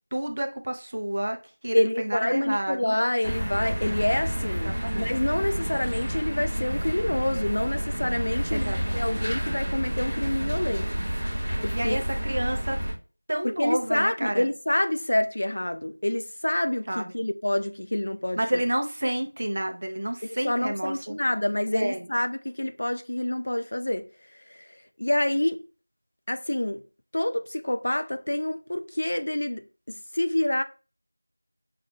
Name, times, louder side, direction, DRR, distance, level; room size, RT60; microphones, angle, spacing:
voice 1, 0.1-1.4 1.6-3.0 4.5-5.1 8.5-9.0 11.7-12.8 13.3-14.5 16.9-17.1 18.4-21.2 21.7-22.1, right 1 dB, 25° right, 0.5 m, -29 dB
voice 2, 1.7-10.9 11.6-12.0 13.4-18.6 20.4-24.1 24.5-24.6 25.0-25.6 26.3-26.8 27.1-30.6, left 1 dB, 40° left, 0.3 m, -27 dB
sound 1, 3.2-12.9, equal, 10° right, 0.8 m, -29 dB
5.7 x 2.3 x 3.1 m
figure-of-eight pair, 175°, 0 cm